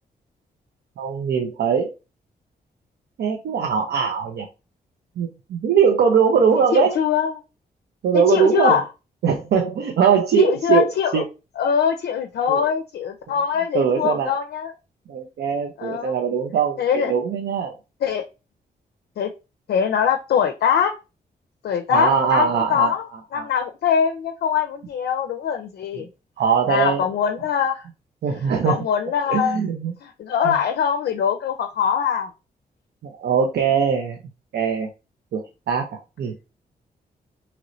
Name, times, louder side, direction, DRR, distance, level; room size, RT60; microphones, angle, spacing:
voice 1, 1.0-1.9 3.2-4.5 5.2-6.9 8.0-8.8 9.2-10.9 11.1-11.3 12.5-12.7 13.7-14.3 15.1-17.7 21.9-22.9 23.3-23.5 26.0-26.1 26.4-27.0 28.2-28.8 29.3-29.9 30.4-30.6 33.0-34.2 34.5-34.9 35.3-36.3, right 7 dB, 90° right, 2 dB, 0.5 m, -21 dB
voice 2, 6.7-7.4 8.1-8.8 10.4-11.2 11.6-14.7 15.8-16.1 16.8-17.1 18.0-18.2 19.2-19.3 19.7-20.9 21.6-23.0 23.3-26.1 26.7-27.8 28.6-29.6 30.0-32.3, left 8 dB, 85° left, 5 dB, 0.4 m, -22 dB
3.0 x 3.0 x 2.5 m, 0.28 s
cardioid pair, 95°, 16 cm